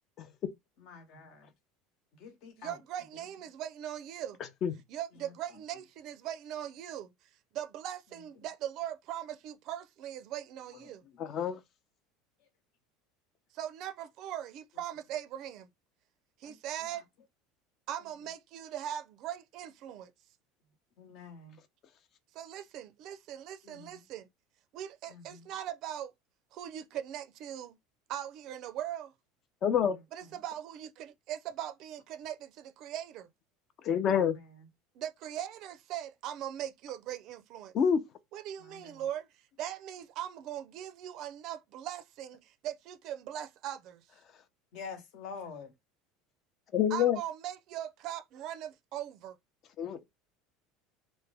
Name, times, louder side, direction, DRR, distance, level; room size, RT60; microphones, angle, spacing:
voice 1, 0.8-1.5 2.1-2.8 3.1-3.3 5.1-5.3 8.4-8.5 10.7-11.3 16.4-17.0 18.0-18.1 21.0-21.6 23.6-24.0 25.1-25.5 30.2-30.4 34.1-34.7 38.6-39.1 44.7-45.7, left 5 dB, 65° left, 1.1 m, -48 dB
voice 2, 2.6-4.4 4.9-7.1 7.5-11.0 13.5-15.7 16.4-17.0 17.9-20.1 22.3-24.3 24.7-26.1 26.5-27.8 28.1-29.1 30.1-33.3 35.0-37.7 38.3-39.3 39.6-44.0 46.9-49.4, right 11 dB, 55° right, 0.4 m, -40 dB
voice 3, 11.2-11.6 29.6-30.0 33.8-34.4 37.7-38.0 46.7-47.2 49.8-50.0, left 8 dB, 45° left, 0.6 m, -27 dB
3.3 x 2.1 x 3.3 m
supercardioid pair, 115°, 0 cm